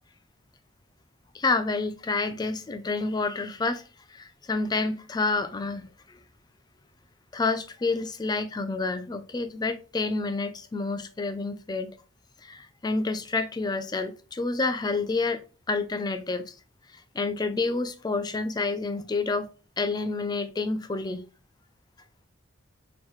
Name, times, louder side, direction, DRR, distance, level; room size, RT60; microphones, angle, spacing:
voice 1, 1.3-3.8 4.1-6.2 7.3-11.9 12.4-16.5 17.1-19.5 19.8-21.2, left 3 dB, 20° left, 0.3 m, -29 dB
4.5 x 3.0 x 3.0 m
head